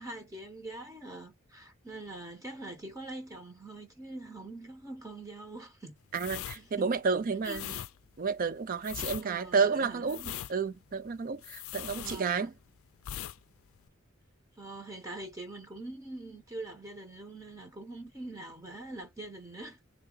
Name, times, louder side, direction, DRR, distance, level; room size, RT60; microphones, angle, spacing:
voice 1, 0.0-5.9 6.5-6.9 7.4-7.8 9.2-10.3 11.9-12.5 14.6-19.8, right 2 dB, 15° right, 0.9 m, -44 dB
sound 1, 6.1-12.7 13.0-13.4 13.6-13.9, left 11 dB, 80° left, 0.4 m, -41 dB
voice 2, 6.1-7.7 8.2-10.2 10.5-12.5, right 5 dB, 40° right, 0.4 m, -30 dB
3.9 x 2.9 x 3.8 m
head